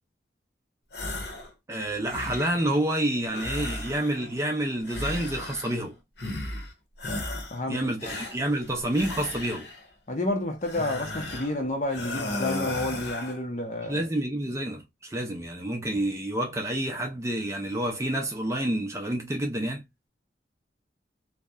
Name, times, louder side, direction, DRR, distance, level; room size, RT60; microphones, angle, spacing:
sound 1, 0.9-1.5 1.8-2.7 3.3-4.4 4.8-5.9 6.2-6.7 7.0-7.6 8.0-9.9 10.6-11.6 11.9-13.4, left 2 dB, 65° left, 0.9 m, -35 dB
voice 1, 1.7-6.0 7.7-9.7 13.9-19.8, right 1 dB, 15° right, 0.4 m, -28 dB
voice 2, 7.5-8.2 10.1-14.1, left 2 dB, 40° left, 0.6 m, -30 dB
2.7 x 2.1 x 2.2 m
head